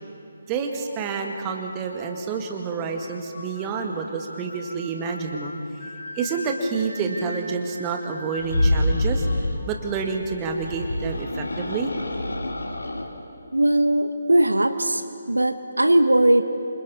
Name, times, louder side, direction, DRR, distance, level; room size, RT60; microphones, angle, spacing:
voice 1, 0.5-5.5 6.2-9.3 9.7-11.9, right 5 dB, 20° right, 3 dB, 1.9 m, -28 dB
sound 1, 0.6-13.4, left 1 dB, 50° left, 4.5 m, -43 dB
sound 2, 8.4-9.6 10.5-13.1, left 1 dB, 70° left, 2.4 m, -26 dB
voice 2, 13.5-15.0 15.3-16.4, right 1 dB, 80° right, 9 dB, 1.1 m, -19 dB
27.5 x 26.0 x 4.2 m, 2.6 s
figure-of-eight pair, 145°, 0 cm